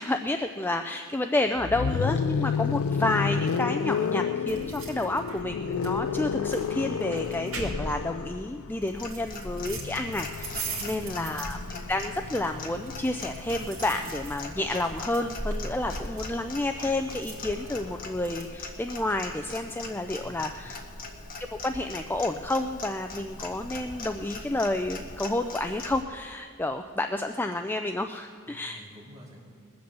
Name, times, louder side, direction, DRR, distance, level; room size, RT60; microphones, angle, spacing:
voice 1, 0.0-20.8 21.4-28.8, left 2 dB, 10° left, 6 dB, 0.4 m, -30 dB
sound 1, 1.6-13.5 14.8-18.4, left 6 dB, 80° left, 0.3 m, -32 dB
sound 2, 4.5-18.5, right 2 dB, 70° right, 2.6 m, -40 dB
Clock, 8.9-26.0, left 3 dB, 45° left, 1.6 m, -41 dB
voice 2, 10.6-11.3 20.2-20.7 28.4-29.4, equal, 20° right, -7 dB, 4.1 m, -50 dB
20.5 x 7.8 x 6.8 m, 2.2 s
head